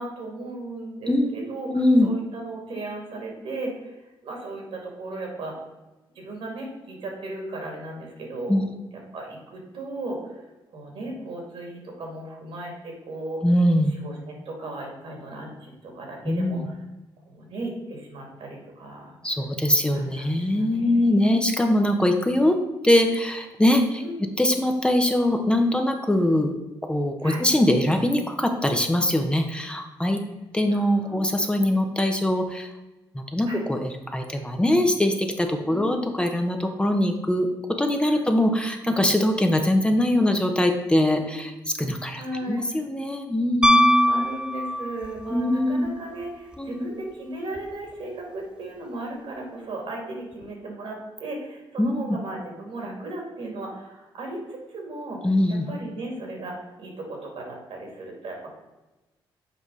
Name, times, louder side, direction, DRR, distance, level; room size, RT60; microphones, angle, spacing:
voice 1, 0.0-1.7 2.0-5.6 6.2-8.6 9.1-10.4 10.7-13.4 13.9-16.8 17.3-19.2 19.9-21.4 24.0-24.2 27.2-27.4 30.7-31.2 33.4-33.6 35.7-36.0 38.0-38.3 41.1-41.4 42.1-42.7 44.0-55.2 55.5-58.5, right 2 dB, 70° right, 0 dB, 2.4 m, -36 dB
voice 2, 1.7-2.1 8.5-8.6 13.4-14.0 16.3-16.7 19.2-22.6 22.8-24.0 24.4-26.5 26.8-30.2 30.5-32.7 33.1-37.5 37.8-41.5 41.8-42.2 42.5-44.3 45.3-45.9 46.6-46.9 51.8-52.2 55.2-55.7, left 1 dB, 10° left, 4 dB, 0.8 m, -22 dB
Piano, 43.6-45.2 47.6-47.7, equal, 10° right, 0.4 m, -20 dB
7.4 x 4.8 x 4.0 m, 1.1 s
cardioid pair, 75°, 10 cm